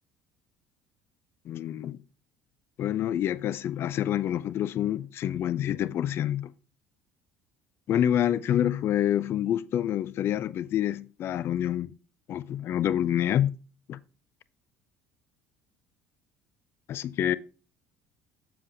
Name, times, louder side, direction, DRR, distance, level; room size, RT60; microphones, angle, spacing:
voice 1, 1.5-2.0 2.8-6.5 7.9-11.9 12.3-13.5 13.9-14.0 16.9-17.4, left 11 dB, 55° left, 0.5 m, -27 dB
7.4 x 7.0 x 3.3 m
hypercardioid pair, 70°, 5 cm